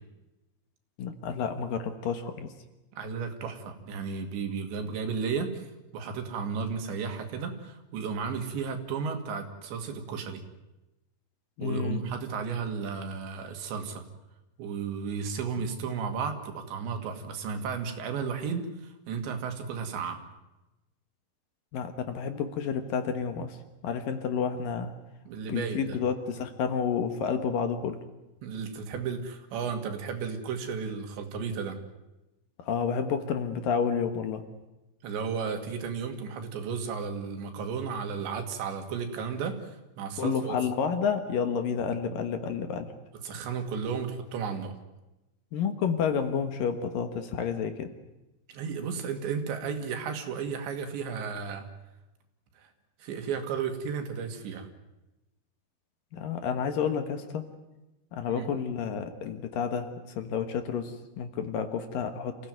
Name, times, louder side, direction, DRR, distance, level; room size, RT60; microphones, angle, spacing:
voice 1, 1.0-2.5 11.6-12.1 21.7-23.6 23.8-24.9 25.5-28.0 32.6-34.4 40.2-42.9 45.5-47.9 56.1-57.5 58.1-62.4, left 6 dB, 60° left, 8 dB, 2.7 m, -30 dB
voice 2, 2.9-5.7 5.9-10.4 11.6-14.0 14.6-20.2 25.3-26.0 28.4-31.8 35.0-40.6 43.2-44.7 48.5-51.7 52.6-52.7 53.0-54.7 58.3-58.5, right 6 dB, 85° right, 5 dB, 4.7 m, -34 dB
27.5 x 16.5 x 9.4 m, 1.0 s
omnidirectional pair, 5.0 m